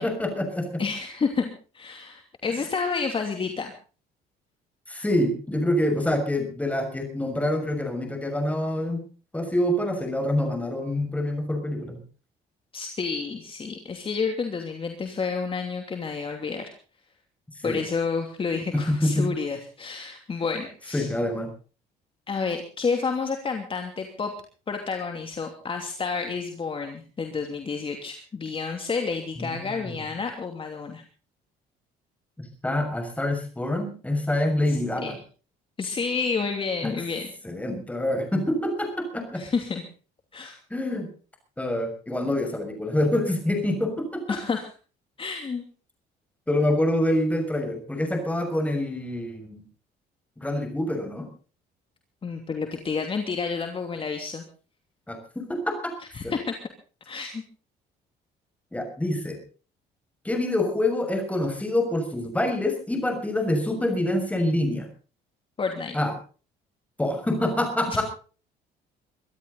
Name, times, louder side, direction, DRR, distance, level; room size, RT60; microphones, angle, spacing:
voice 1, 0.0-0.8 2.5-2.6 4.9-9.0 9.3-12.0 17.6-17.8 18.7-19.3 20.9-21.5 29.4-30.0 32.4-35.2 36.8-36.9 37.4-39.4 40.7-41.1 41.6-44.4 46.5-49.6 50.4-51.3 55.1-55.9 56.2-56.4 58.7-59.4 60.2-64.9 65.9-66.1 67.0-68.0, left 1 dB, 10° left, 5 dB, 6.5 m, -26 dB
voice 2, 0.8-3.7 12.7-16.7 17.6-21.1 22.3-24.3 24.7-31.0 34.7-35.1 35.8-37.3 39.3-39.8 40.3-40.6 44.3-44.7 45.2-45.6 52.2-54.4 56.1-56.5 57.0-57.4 65.6-66.0 67.9-68.0, left 5 dB, 30° left, 4 dB, 2.9 m, -30 dB
24.0 x 13.0 x 4.1 m, 0.38 s
cardioid pair, 110°, 17 cm